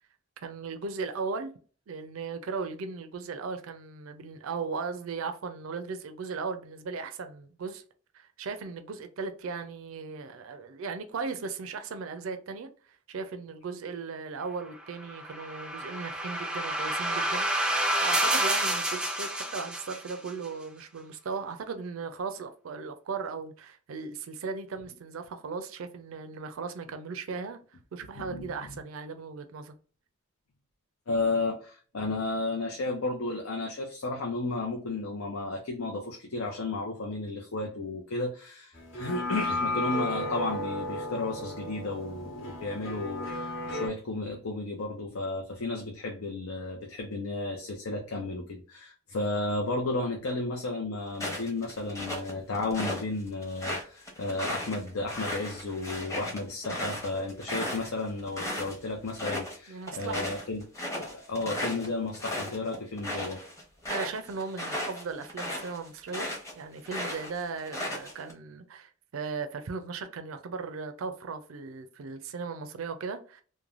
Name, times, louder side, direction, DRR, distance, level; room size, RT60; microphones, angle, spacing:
voice 1, 0.4-1.5 1.9-7.8 8.1-12.7 13.1-27.6 27.9-29.7 59.7-60.2 63.9-73.4, right 4 dB, 75° right, 0.4 m, -37 dB
sound 1, 15.0-20.3, right 1 dB, 5° right, 0.3 m, -29 dB
voice 2, 28.2-28.7 31.1-60.7 61.0-63.4, left 2 dB, 85° left, 0.6 m, -33 dB
sound 2, 38.7-43.9, left 1 dB, 65° left, 1.1 m, -34 dB
sound 3, 51.1-53.0 53.4-58.8 59.1-59.6 59.9-66.5 66.9-68.3, left 1 dB, 15° left, 0.7 m, -35 dB
3.1 x 2.1 x 2.4 m
head